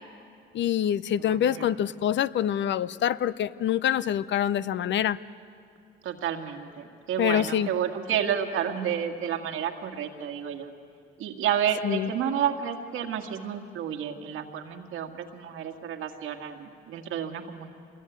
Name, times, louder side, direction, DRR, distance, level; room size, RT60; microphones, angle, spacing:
voice 1, 0.5-5.2 7.2-7.7 11.8-12.1, left 10 dB, 65° left, 17 dB, 0.7 m, -25 dB
voice 2, 1.2-1.8 6.0-10.7 11.2-17.7, right 9 dB, 90° right, 5 dB, 2.0 m, -30 dB
26.5 x 21.5 x 9.3 m, 2.4 s
cardioid pair, 90°, 20 cm